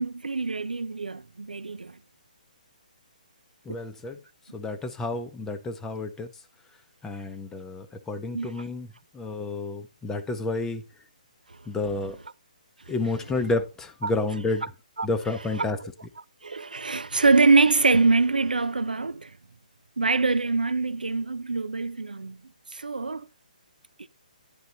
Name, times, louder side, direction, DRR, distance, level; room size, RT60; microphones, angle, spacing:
voice 1, 0.0-1.9 3.7-3.8 8.3-8.7 14.0-14.1 14.6-14.7 15.0-15.1 15.6-15.9 16.4-19.3 20.0-22.4 22.7-23.3, right 3 dB, 80° right, 0.5 m, -24 dB
voice 2, 3.7-4.2 4.5-6.3 7.0-8.9 9.1-10.8 11.7-12.2 12.9-14.6 15.0-15.8, left 3 dB, 10° left, 0.7 m, -30 dB
10.0 x 4.0 x 4.0 m
figure-of-eight pair, 140°, 5 cm